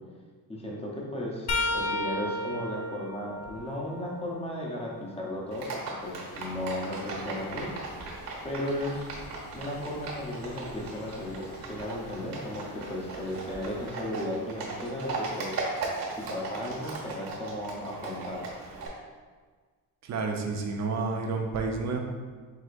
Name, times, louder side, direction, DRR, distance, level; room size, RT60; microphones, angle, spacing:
voice 1, 0.5-5.7 6.0-7.7 8.4-9.0 9.5-15.6 16.2-18.5, left 1 dB, 15° left, -3 dB, 0.8 m, -35 dB
sound 1, 1.5-5.2 5.8-7.7 10.6-10.8 12.0-12.2 13.5-13.6, left 1 dB, 50° left, 0.5 m, -35 dB
Livestock farm animals working animals, 5.5-18.9, right 3 dB, 85° right, 1.2 m, -38 dB
sound 2, 6.0-13.9, left 1 dB, 90° left, 1.5 m, -49 dB
voice 2, 20.0-22.0, right 4 dB, 50° right, 2 dB, 0.6 m, -30 dB
4.8 x 3.6 x 2.5 m, 1.5 s
cardioid pair, 150°, 34 cm